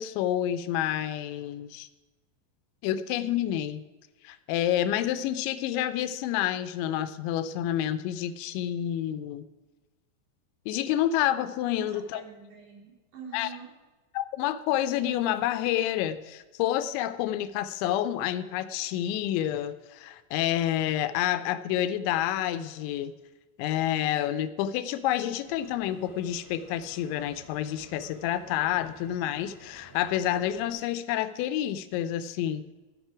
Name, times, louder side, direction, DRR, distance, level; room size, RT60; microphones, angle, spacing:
voice 1, 0.0-1.9 2.8-3.8 4.2-9.5 10.7-12.2 13.3-13.5 14.1-23.1 23.6-32.7, left 12 dB, 85° left, 12 dB, 2.9 m, -29 dB
voice 2, 11.7-13.8, right 5 dB, 70° right, -2 dB, 4.9 m, -46 dB
sound 1, 25.4-30.7, equal, 5° left, 2.4 m, -53 dB
13.5 x 9.6 x 4.8 m, 1.2 s
omnidirectional pair, 5.2 m